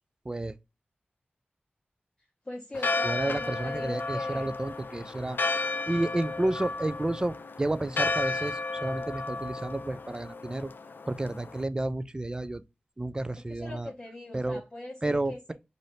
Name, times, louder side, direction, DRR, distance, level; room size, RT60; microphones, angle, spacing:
voice 1, 2.4-4.5 13.5-15.5, left 2 dB, 20° left, 0.9 m, -41 dB
Church bell, 2.7-11.6, left 3 dB, 70° left, 0.4 m, -33 dB
voice 2, 3.0-5.4 5.9-10.7 11.1-12.6 13.0-13.9 14.3-14.6 15.0-15.5, right 2 dB, 20° right, 0.4 m, -31 dB
3.2 x 2.6 x 4.1 m
wide cardioid pair, 70°, 4 cm